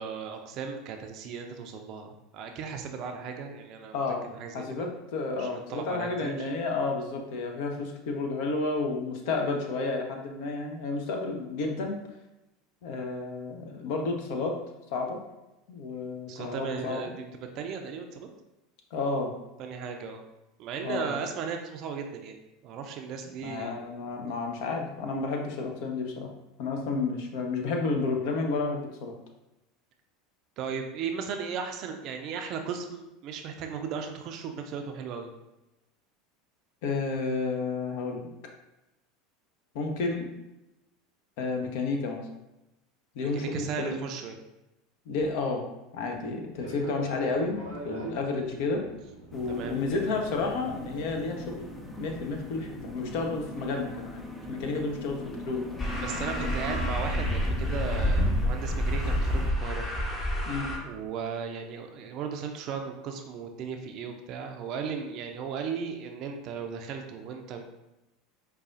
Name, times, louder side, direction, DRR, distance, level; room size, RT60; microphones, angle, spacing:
voice 1, 0.0-4.0 4.4-4.9 5.4-6.5 16.3-17.3 17.5-18.3 19.6-20.2 20.6-23.9 30.6-35.3 43.2-44.4 49.5-49.8 56.0-59.9 60.8-67.6, right 6 dB, 50° right, 4 dB, 0.4 m, -36 dB
voice 2, 3.9-4.3 4.5-12.0 12.8-14.6 14.9-15.2 15.7-17.0 18.9-19.3 20.8-21.2 23.4-26.3 26.6-29.2 36.8-38.2 39.7-40.3 41.4-42.3 43.1-43.9 45.1-45.7 45.9-48.8 49.3-51.7 52.0-55.6 60.4-60.7, left 3 dB, 60° left, 2 dB, 0.6 m, -31 dB
Fixed-wing aircraft airplane, 46.5-52.9, right 1 dB, 85° left, 1.1 m, -43 dB
sound 1, 49.3-59.5, left 2 dB, 10° left, 0.4 m, -41 dB
sound 2, 55.8-60.8, equal, 25° left, 0.9 m, -28 dB
4.8 x 2.3 x 2.5 m, 0.96 s
hypercardioid pair, 80°, 0 cm